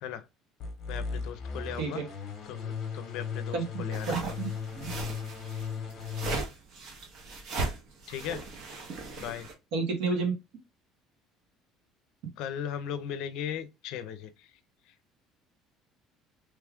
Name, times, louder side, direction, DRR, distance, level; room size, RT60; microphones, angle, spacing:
sound 1, 0.6-6.4, left 5 dB, 35° left, 1.0 m, -37 dB
voice 1, 0.9-2.0 2.4-4.2 8.1-8.5 9.2-9.5 12.4-14.6 14.9-15.0, left 9 dB, 60° left, 0.5 m, -37 dB
sound 2, 3.9-9.5, right 3 dB, 45° right, 0.8 m, -37 dB
voice 2, 4.1-4.5 4.7-4.9 9.7-10.3, right 4 dB, 70° right, 1.2 m, -30 dB
3.1 x 2.3 x 3.4 m
cardioid pair, 175°, 0 cm